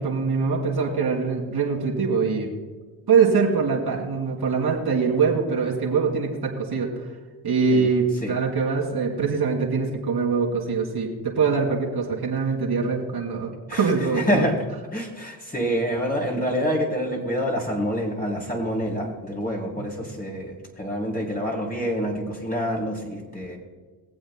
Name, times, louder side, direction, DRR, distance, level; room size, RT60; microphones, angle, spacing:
voice 1, 0.0-2.5 3.1-6.9 7.4-14.5 19.8-19.9, right 5 dB, 50° right, -2 dB, 2.9 m, -23 dB
voice 2, 14.1-14.5 14.9-23.6, equal, 20° left, -1 dB, 3.2 m, -27 dB
23.0 x 7.8 x 2.2 m, 1.4 s
supercardioid pair, 55°, 48 cm